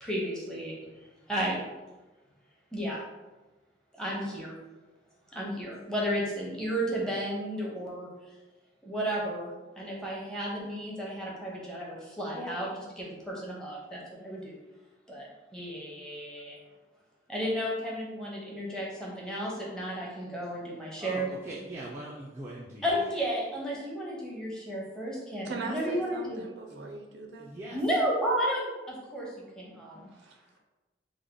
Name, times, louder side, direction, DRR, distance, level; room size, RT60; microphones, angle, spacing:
voice 1, 0.0-0.7 1.3-1.6 2.7-3.0 4.0-4.5 5.3-8.1 8.8-9.5 9.8-14.5 15.1-16.6 17.3-21.3 22.8-26.5 27.7-29.3 29.6-30.1, equal, 5° left, -5 dB, 0.7 m, -33 dB
voice 2, 21.0-22.9 26.7-26.9 27.4-27.8, right 1 dB, 15° right, -6 dB, 0.4 m, -41 dB
voice 3, 25.4-27.6 30.1-30.6, right 4 dB, 80° right, 3 dB, 0.5 m, -40 dB
3.4 x 2.1 x 3.7 m, 1.1 s
head